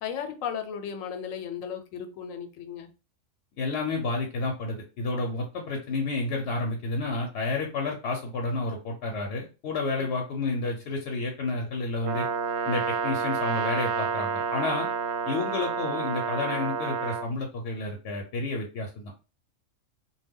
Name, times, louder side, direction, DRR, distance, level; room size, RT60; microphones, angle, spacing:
voice 1, 0.0-2.9 10.0-10.1, left 8 dB, 90° left, 1.0 m, -35 dB
voice 2, 3.6-12.3 12.6-14.9 15.3-19.1, left 3 dB, 65° left, 0.8 m, -30 dB
Brass instrument, 12.0-17.3, right 5 dB, 65° right, 0.8 m, -29 dB
2.2 x 2.2 x 3.5 m
omnidirectional pair, 1.3 m